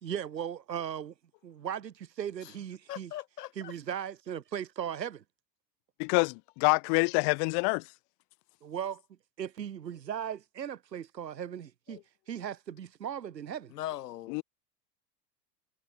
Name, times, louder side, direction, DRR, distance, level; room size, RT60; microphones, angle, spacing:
voice 1, 0.0-1.1 1.4-3.1 3.6-5.2 8.6-9.0 9.4-12.0 12.3-13.7, right 9 dB, 85° right, 1.6 m, -37 dB
voice 2, 2.9-3.7 13.7-14.4, left 13 dB, 70° left, 2.7 m, -40 dB
voice 3, 6.0-7.8 14.3-14.4, left 40 dB or more, 45° left, 0.8 m, -26 dB
hypercardioid pair, 85°, 49 cm